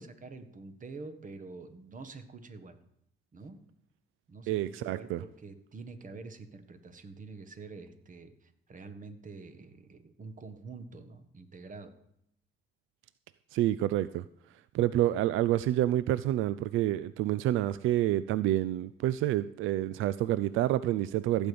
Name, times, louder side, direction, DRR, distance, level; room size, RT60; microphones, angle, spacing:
voice 1, 0.0-2.8 3.3-3.6 4.3-11.9, right 4 dB, 40° right, 9 dB, 1.5 m, -46 dB
voice 2, 4.5-5.2 13.5-14.3 14.7-21.5, right 13 dB, 85° right, 16 dB, 0.4 m, -28 dB
15.5 x 5.3 x 8.5 m, 0.76 s
cardioid pair, 90°, 20 cm